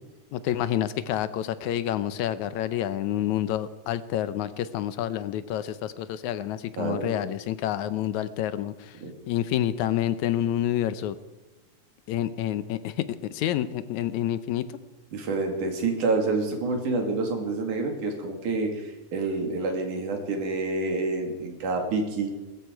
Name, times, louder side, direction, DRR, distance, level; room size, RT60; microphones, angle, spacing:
voice 1, 0.3-9.0 9.3-11.2 12.1-14.8, left 11 dB, 75° left, 13 dB, 2.1 m, -28 dB
voice 2, 6.8-7.2 9.0-9.1 15.1-22.3, right 3 dB, 80° right, 3 dB, 4.0 m, -28 dB
22.0 x 13.5 x 4.7 m, 1.1 s
omnidirectional pair, 3.5 m